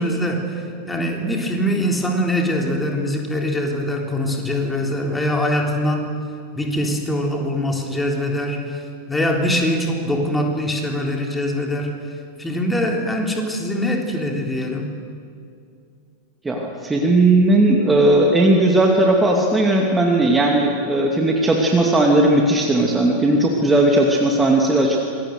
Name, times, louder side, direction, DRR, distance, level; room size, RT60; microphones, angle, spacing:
voice 1, 0.0-6.1 6.5-11.9 12.4-14.9, equal, 10° left, 1 dB, 3.7 m, -23 dB
voice 2, 16.4-25.0, right 2 dB, 10° right, 0 dB, 2.5 m, -17 dB
27.0 x 22.0 x 6.7 m, 2.4 s
figure-of-eight pair, 90°, 0 cm